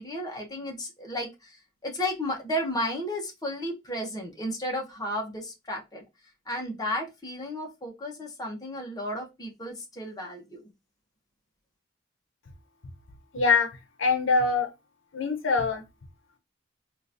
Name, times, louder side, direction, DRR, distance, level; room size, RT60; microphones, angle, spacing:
voice 1, 0.0-6.0 6.5-10.6, equal, 20° left, 0.9 m, -33 dB
voice 2, 13.3-13.7 14.0-14.7 15.1-15.8, left 4 dB, 85° left, 0.7 m, -23 dB
3.8 x 2.5 x 2.6 m
head